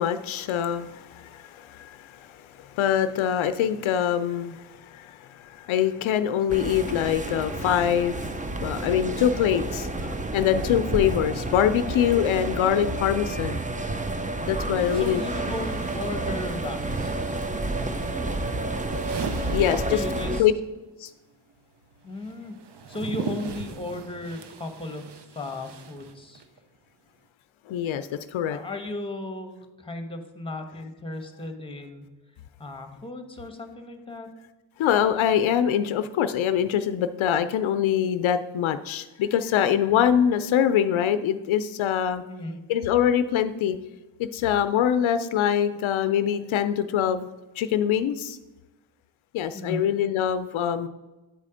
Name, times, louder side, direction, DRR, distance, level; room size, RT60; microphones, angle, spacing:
voice 1, 0.0-8.3 8.6-9.9 10.3-13.6 14.5-15.2 19.5-20.0 20.4-20.5 21.0-21.1 27.7-28.6 34.8-42.2 42.7-43.8 44.2-47.3 47.6-48.4 49.3-50.9, left 9 dB, 80° left, 11 dB, 0.5 m, -24 dB
sound 1, 6.5-20.4, right 2 dB, 15° right, 0.6 m, -30 dB
sound 2, 13.8-13.9 14.7-20.5 20.7-26.6, right 5 dB, 60° right, 0.8 m, -40 dB
voice 2, 14.9-17.4 19.9-20.4 22.0-22.5 22.9-25.0 25.3-26.4 28.5-32.1 32.6-34.3 42.2-42.6 49.5-49.9, left 2 dB, 10° left, 6 dB, 1.2 m, -36 dB
9.4 x 4.2 x 5.0 m, 1.1 s
cardioid pair, 75°, 47 cm